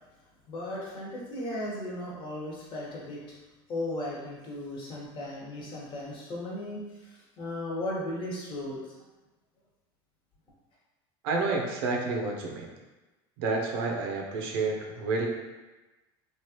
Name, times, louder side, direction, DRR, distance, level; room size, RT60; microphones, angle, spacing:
voice 1, 0.1-3.4 3.7-9.0, left 1 dB, 40° left, -4 dB, 1.1 m, -36 dB
voice 2, 11.2-12.7 13.4-15.3, right 3 dB, 75° right, 0 dB, 0.7 m, -29 dB
3.1 x 2.5 x 2.9 m, 1.1 s
supercardioid pair, 105°, 13 cm